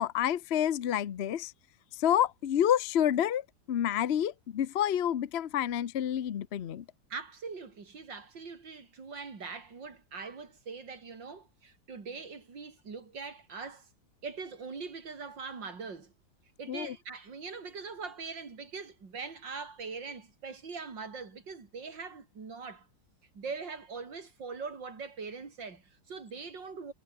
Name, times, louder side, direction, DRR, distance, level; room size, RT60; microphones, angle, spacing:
voice 1, 0.0-1.5 2.0-6.8 16.7-16.9, left 10 dB, 60° left, 0.7 m, -29 dB
voice 2, 7.1-13.9 14.2-16.1 16.6-22.9 23.3-26.9, right 4 dB, 70° right, 4.0 m, -42 dB
omnidirectional pair, 2.0 m